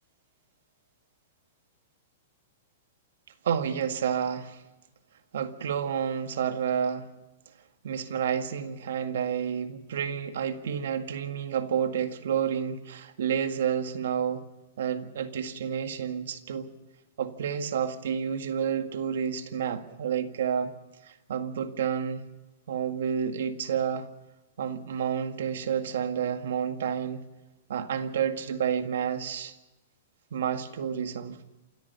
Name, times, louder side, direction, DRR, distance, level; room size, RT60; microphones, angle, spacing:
voice 1, 3.4-4.6 5.3-7.1 7.8-14.5 14.8-16.7 17.2-20.7 21.0-22.3 22.7-24.1 24.6-27.2 27.7-29.5 30.3-31.4, right 8 dB, 80° right, 1.9 m, -30 dB
28.0 x 14.0 x 6.9 m
supercardioid pair, 175°, 0 cm